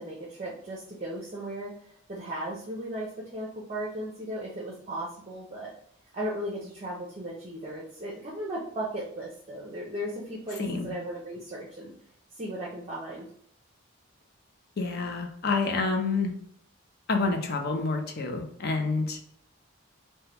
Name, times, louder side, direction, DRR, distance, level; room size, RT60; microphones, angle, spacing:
voice 1, 0.0-1.7 2.1-5.7 6.1-11.9 12.4-13.3, right 1 dB, 30° right, -3 dB, 0.5 m, -36 dB
voice 2, 10.6-10.9 14.8-16.3 17.1-19.2, left 3 dB, 50° left, 4 dB, 0.5 m, -28 dB
3.2 x 2.2 x 2.8 m, 0.65 s
head